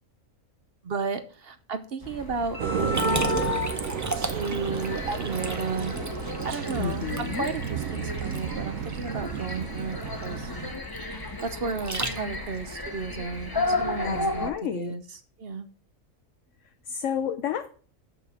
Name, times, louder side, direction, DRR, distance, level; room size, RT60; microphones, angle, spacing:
voice 1, 0.8-3.4 4.2-5.9 6.4-10.5 11.4-15.0 15.4-15.7, right 4 dB, 50° right, 9 dB, 1.0 m, -33 dB
sound 1, 2.0-14.5, left 3 dB, 20° left, 0.9 m, -33 dB
sound 2, 2.6-10.7, right 9 dB, 80° right, 1.2 m, -32 dB
Liquid, 2.9-12.6, right 2 dB, 15° right, 0.6 m, -36 dB
voice 2, 6.8-7.5 14.0-14.9 16.9-17.7, left 8 dB, 70° left, 7 dB, 1.0 m, -31 dB
6.7 x 5.7 x 7.0 m, 0.41 s
omnidirectional pair, 1.4 m